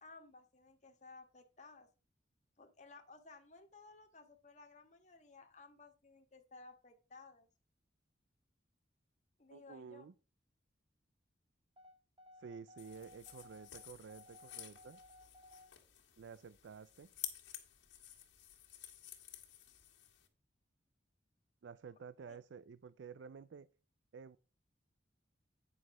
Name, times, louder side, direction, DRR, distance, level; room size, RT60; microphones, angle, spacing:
voice 1, 0.0-1.9 2.6-7.5 9.4-10.1 22.3-22.4, left 3 dB, 40° left, 5 dB, 1.5 m, -58 dB
voice 2, 9.5-10.1 12.4-15.0 16.2-17.1 21.6-23.7 24.1-24.4, right 6 dB, 80° right, 17 dB, 0.4 m, -52 dB
sound 1, 11.8-15.7, left 1 dB, 30° right, 2.2 m, -60 dB
sound 2, 12.8-20.3, left 12 dB, 75° left, 2.0 m, -52 dB
9.6 x 6.2 x 4.8 m, 0.33 s
head